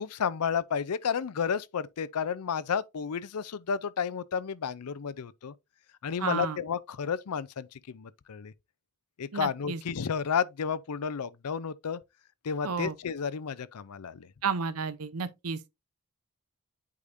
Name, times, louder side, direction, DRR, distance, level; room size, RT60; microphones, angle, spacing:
voice 1, 0.0-5.5 6.0-8.5 9.2-12.0 12.4-14.3, left 6 dB, 85° left, 0.5 m, -32 dB
voice 2, 6.2-6.6 9.3-9.8 12.6-12.9 14.4-15.6, right 5 dB, 85° right, 0.7 m, -32 dB
8.4 x 4.9 x 2.6 m
head